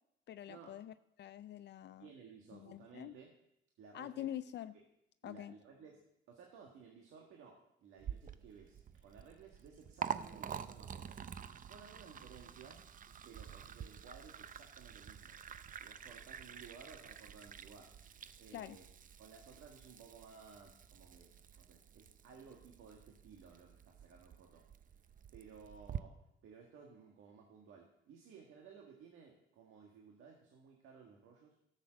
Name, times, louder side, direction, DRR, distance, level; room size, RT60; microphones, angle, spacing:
voice 1, 0.3-2.1 2.5-3.2 3.9-4.7 5.2-5.5 18.5-18.8, left 11 dB, 60° left, 13 dB, 0.4 m, -46 dB
voice 2, 2.0-3.3 3.8-4.3 5.2-6.0 6.3-11.2 11.7-12.8 13.2-15.4 15.8-17.9 18.4-18.8 19.2-21.3 21.6-24.6 25.3-31.5, right 6 dB, 85° right, 0 dB, 1.7 m, -57 dB
Liquid, 8.0-26.0, right 8 dB, 45° right, 0.6 m, -48 dB
12.5 x 7.5 x 6.3 m, 0.80 s
cardioid pair, 90°, 20 cm